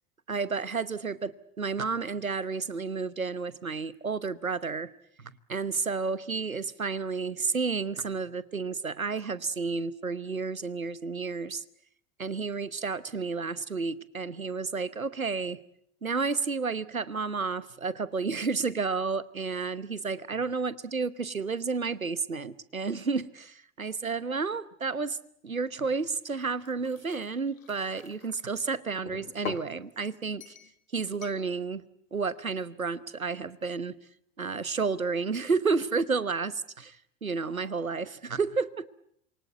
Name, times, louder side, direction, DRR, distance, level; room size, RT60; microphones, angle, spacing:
voice 1, 0.3-4.9 5.5-11.6 12.2-15.6 16.0-25.2 25.4-30.5 30.9-31.9 32.1-34.0 34.4-36.6 37.2-38.9, right 4 dB, 90° right, 18 dB, 1.1 m, -31 dB
sound 1, 26.2-28.4 29.1-29.7 30.4-30.7 31.2-31.4, left 7 dB, 75° left, 1.7 m, -43 dB
27.5 x 24.0 x 8.1 m, 0.69 s
figure-of-eight pair, 80°, 40 cm